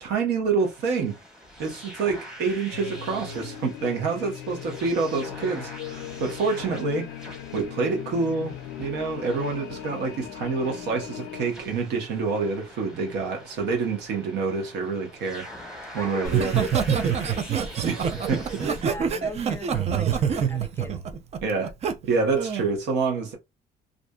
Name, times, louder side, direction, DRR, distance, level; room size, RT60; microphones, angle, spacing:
voice 1, 0.0-1.2 1.6-7.2 7.5-15.5 15.9-16.7 17.9-18.5 21.4-21.7 22.0-23.3, right 4 dB, 80° right, 1.0 m, -27 dB
sound 1, 0.6-18.8, equal, 5° right, 1.0 m, -45 dB
sound 2, 2.7-11.5, left 11 dB, 75° left, 0.4 m, -39 dB
voice 2, 16.0-21.0, left 2 dB, 15° left, 0.5 m, -41 dB
Laughter, 16.2-21.9 22.4-22.7, right 7 dB, 40° right, 0.4 m, -25 dB
2.6 x 2.4 x 2.2 m
cardioid pair, 110°, 17 cm